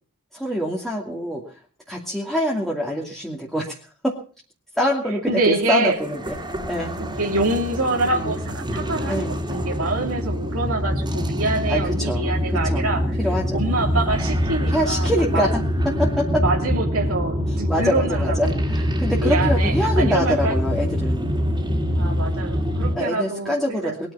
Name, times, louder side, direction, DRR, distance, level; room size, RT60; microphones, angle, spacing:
voice 1, 0.3-1.6 1.9-3.8 4.0-4.2 4.8-6.4 6.7-6.9 8.1-8.3 9.1-9.4 11.7-12.3 12.6-12.9 13.2-13.9 14.7-15.6 16.0-16.4 17.7-21.3 22.9-24.1, equal, ahead, -3 dB, 2.6 m, -25 dB
voice 2, 5.3-6.0 7.0-13.0 13.5-15.5 16.4-18.5 19.2-20.5 21.9-23.9, right 2 dB, 70° right, 1 dB, 3.0 m, -25 dB
sound 1, 5.8-23.0, equal, 20° right, 3.4 m, -24 dB
21.5 x 10.5 x 5.6 m, 0.41 s
head